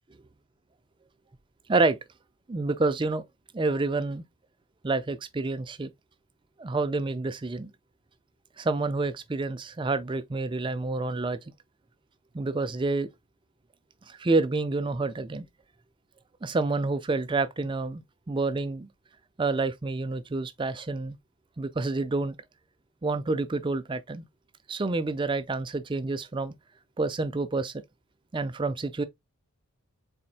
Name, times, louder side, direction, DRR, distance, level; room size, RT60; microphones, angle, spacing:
voice 1, 2.5-3.2 3.5-4.2 4.8-5.9 6.6-7.7 8.6-11.4 12.3-13.1 14.1-15.5 16.4-18.9 19.4-21.2 21.6-22.4 23.0-24.2 24.7-26.5 27.0-27.7 28.3-29.0, right 3 dB, 20° right, 0.4 m, -28 dB
4.2 x 4.1 x 2.3 m
head